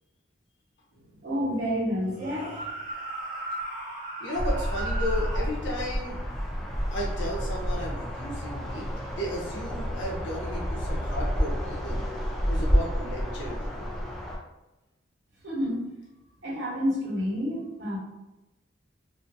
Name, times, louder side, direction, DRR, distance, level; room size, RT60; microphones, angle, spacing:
voice 1, 1.2-2.7 15.4-15.9 16.4-18.0, equal, 65° right, -7 dB, 1.2 m, -29 dB
sound 1, 2.1-5.5, right 2 dB, 45° right, 0.8 m, -36 dB
voice 2, 4.2-6.2 6.9-8.9 9.2-13.8, equal, 70° left, -3 dB, 0.8 m, -34 dB
sound 2, 4.3-14.4, equal, ahead, 0.4 m, -29 dB
2.7 x 2.5 x 2.7 m, 1.0 s
head